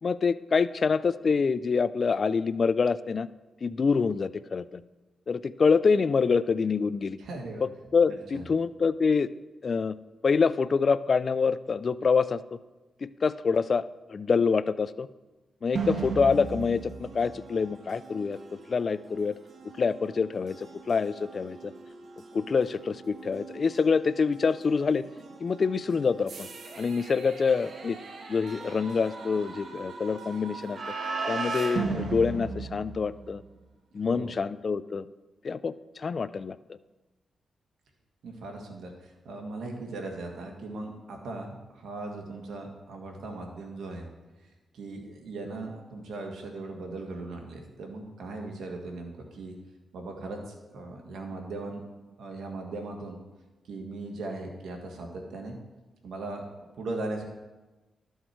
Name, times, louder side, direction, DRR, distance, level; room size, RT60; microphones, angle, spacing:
voice 1, 0.0-3.3 3.6-4.8 5.3-7.2 7.6-9.3 9.6-10.0 10.2-12.6 13.0-13.8 14.1-15.1 15.6-19.3 19.8-21.7 22.3-25.0 25.4-26.5 26.8-28.0 28.3-30.8 31.3-33.4 33.9-35.1 35.4-36.6, left 5 dB, 50° left, 16 dB, 0.4 m, -26 dB
voice 2, 7.2-7.6 8.1-8.5 33.9-34.3 38.2-44.1 44.4-49.6 49.9-51.8 52.2-53.2 53.6-55.5 56.0-56.4 56.8-57.2, right 2 dB, 80° right, 2 dB, 1.7 m, -38 dB
sound 1, 15.7-33.5, right 4 dB, 65° right, 1.2 m, -38 dB
12.5 x 6.5 x 4.5 m, 1.2 s
cardioid pair, 85°, 0 cm